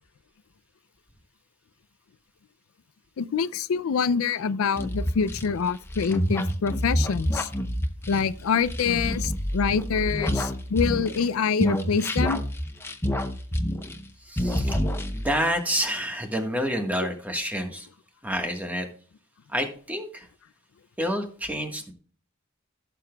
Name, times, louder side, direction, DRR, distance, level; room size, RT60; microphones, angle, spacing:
voice 1, 3.2-7.5 8.1-12.4, left 6 dB, 90° left, 0.4 m, -26 dB
sound 1, 4.8-11.3 11.6-14.1 14.4-15.4, equal, 10° left, 0.7 m, -28 dB
voice 2, 14.2-14.8 15.1-17.9 18.2-18.9 19.5-20.3 21.0-21.9, equal, 10° right, 1.3 m, -28 dB
15.5 x 6.8 x 2.3 m
head